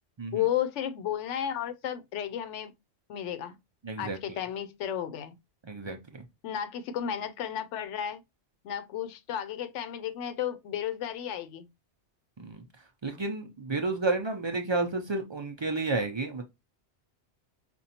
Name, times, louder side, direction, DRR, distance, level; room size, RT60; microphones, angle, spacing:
voice 1, 0.3-2.7 3.1-3.6 4.0-5.3 6.4-8.2 8.6-11.7, left 10 dB, 85° left, 0.9 m, -33 dB
voice 2, 3.8-4.2 5.7-6.0 12.4-12.6 13.0-16.4, right 3 dB, 45° right, 0.3 m, -31 dB
5.1 x 2.3 x 2.7 m
omnidirectional pair, 1.2 m